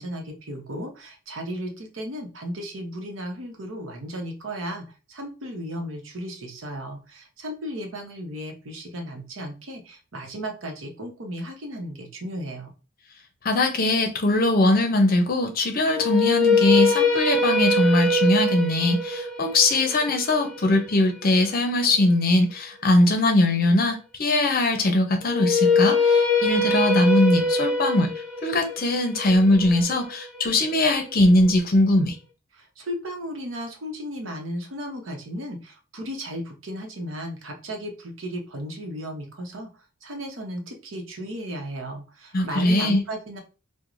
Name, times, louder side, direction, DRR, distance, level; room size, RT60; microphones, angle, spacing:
voice 1, 0.0-12.7 32.5-39.7 40.0-43.4, equal, 65° right, 0.8 m, -35 dB
voice 2, 13.4-28.1 28.4-32.2 42.3-43.0, left 1 dB, 45° left, 0.6 m, -21 dB
sound 1, 15.9-22.0 25.2-31.3, left 2 dB, 5° left, 0.6 m, -23 dB
4.6 x 2.1 x 2.5 m
head